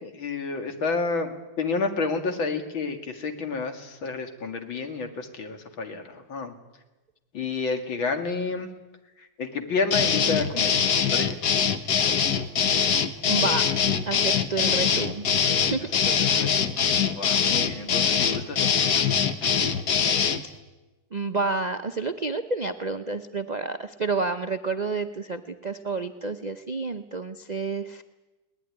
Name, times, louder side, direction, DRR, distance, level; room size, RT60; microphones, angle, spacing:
voice 1, 0.0-6.6 7.3-8.7 9.2-10.8 11.1-11.4 15.8-19.1 19.4-19.6, left 4 dB, 85° left, 6 dB, 3.0 m, -30 dB
sound 1, 9.9-20.4, left 7 dB, 55° left, 1.7 m, -23 dB
voice 2, 13.3-13.7 14.1-15.3 15.7-15.9 21.1-28.0, right 3 dB, 85° right, 8 dB, 0.3 m, -29 dB
21.0 x 19.0 x 9.9 m, 1.1 s
omnidirectional pair, 2.1 m